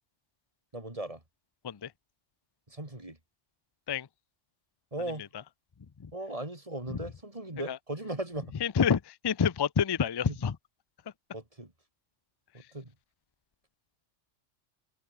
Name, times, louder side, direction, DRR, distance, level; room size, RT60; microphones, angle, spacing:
voice 1, 0.7-1.2 2.7-3.2 4.9-5.2 6.1-8.6 10.3-10.4 11.3-11.7 12.5-12.9, right 1 dB, 25° right, 3.2 m, -38 dB
voice 2, 8.6-10.6, left 7 dB, 40° left, 0.3 m, -28 dB
omnidirectional pair, 1.3 m